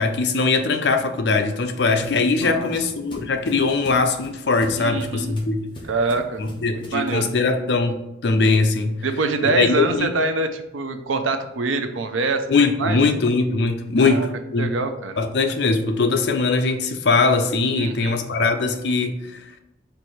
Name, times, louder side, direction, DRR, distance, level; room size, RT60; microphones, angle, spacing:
voice 1, 0.0-5.7 6.4-9.0 9.4-10.1 12.5-14.7 15.2-19.4, left 3 dB, 60° left, 0.5 m, -21 dB
sound 1, 1.0-7.1, equal, 25° left, 0.8 m, -42 dB
voice 2, 4.8-5.4 5.9-6.4 6.7-7.3 9.0-12.5 12.8-13.0 14.0-14.3 14.6-15.2 17.7-18.2, right 3 dB, 90° right, 0.5 m, -25 dB
4.5 x 2.7 x 4.4 m
head